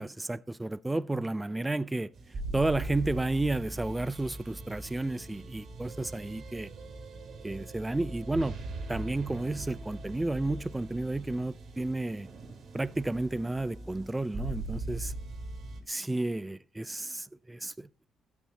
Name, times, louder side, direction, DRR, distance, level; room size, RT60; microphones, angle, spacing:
voice 1, 0.0-2.1 2.5-6.7 7.4-8.6 8.9-12.3 12.7-15.1 15.9-18.1, right 2 dB, 15° right, 0.5 m, -32 dB
sound 1, 2.1-15.8, right 2 dB, 55° right, 2.5 m, -41 dB
12.5 x 6.0 x 4.1 m
cardioid pair, 90°, 0 cm